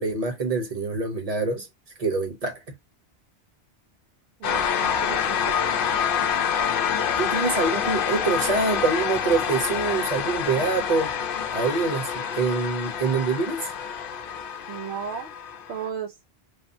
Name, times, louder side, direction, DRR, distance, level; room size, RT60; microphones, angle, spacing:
voice 1, 0.0-1.7 2.0-2.6 7.2-11.1 11.5-13.7, right 4 dB, 35° right, 1.0 m, -25 dB
sound 1, 4.4-15.9, left 8 dB, 60° left, 0.7 m, -27 dB
voice 2, 4.4-5.5 14.7-15.3 15.7-16.1, right 7 dB, 80° right, 0.8 m, -34 dB
3.4 x 2.1 x 2.6 m
omnidirectional pair, 1.1 m